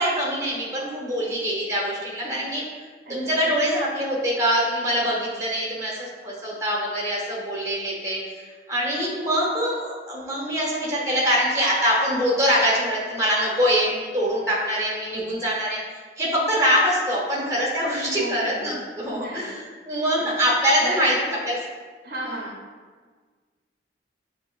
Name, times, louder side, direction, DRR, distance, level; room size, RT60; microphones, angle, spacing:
voice 1, 0.0-2.6 3.1-21.6 22.2-22.4, equal, 20° right, -5 dB, 1.0 m, -24 dB
voice 2, 3.1-3.5 18.1-18.8 19.1-19.5 20.2-20.3 20.8-21.1 22.0-22.6, right 1 dB, 60° right, -4 dB, 0.8 m, -35 dB
7.3 x 2.7 x 2.5 m, 1.5 s
head